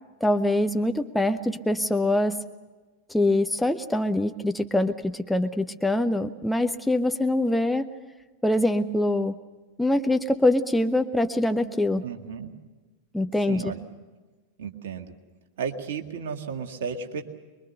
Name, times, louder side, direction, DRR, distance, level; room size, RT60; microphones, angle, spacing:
voice 1, 0.2-2.4 3.1-7.9 8.4-9.4 9.8-12.0 13.1-13.7, left 1 dB, 5° left, 7 dB, 0.8 m, -24 dB
voice 2, 12.0-12.5 13.5-13.8 14.6-15.1 15.6-17.2, right 6 dB, 60° right, 4 dB, 2.0 m, -33 dB
24.0 x 22.5 x 6.7 m, 1.3 s
figure-of-eight pair, 90°, 0 cm